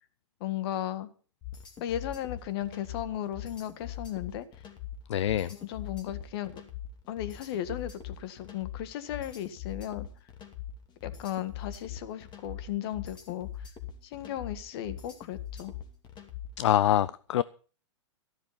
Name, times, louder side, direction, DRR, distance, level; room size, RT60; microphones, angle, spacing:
voice 1, 0.4-1.1 1.8-4.4 5.5-6.6 7.1-10.1 11.0-13.5 14.0-15.7, left 11 dB, 55° left, 1.7 m, -35 dB
sound 1, 1.4-16.7, left 10 dB, 25° left, 2.7 m, -42 dB
voice 2, 5.1-5.5 16.6-17.4, left 12 dB, 70° left, 0.6 m, -25 dB
14.0 x 12.0 x 5.7 m
hypercardioid pair, 125°, 16 cm